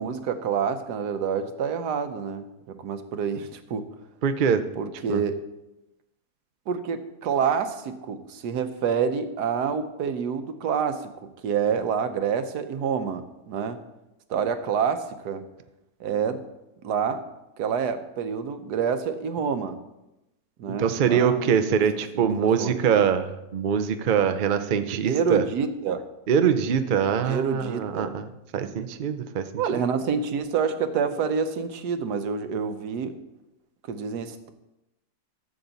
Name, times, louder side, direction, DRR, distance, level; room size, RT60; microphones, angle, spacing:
voice 1, 0.0-3.9 4.8-5.4 6.7-11.1 11.4-13.8 14.3-15.5 16.0-16.4 16.8-17.2 17.6-19.8 20.6-21.8 22.1-22.8 25.1-26.0 27.2-28.2 29.6-33.2 33.9-34.5, right 6 dB, 90° right, 9 dB, 1.4 m, -27 dB
voice 2, 4.2-4.6 5.1-5.2 20.7-25.4 26.3-28.3 28.5-29.9, right 7 dB, 55° right, 9 dB, 0.5 m, -23 dB
14.5 x 7.0 x 4.0 m, 0.95 s
omnidirectional pair, 1.7 m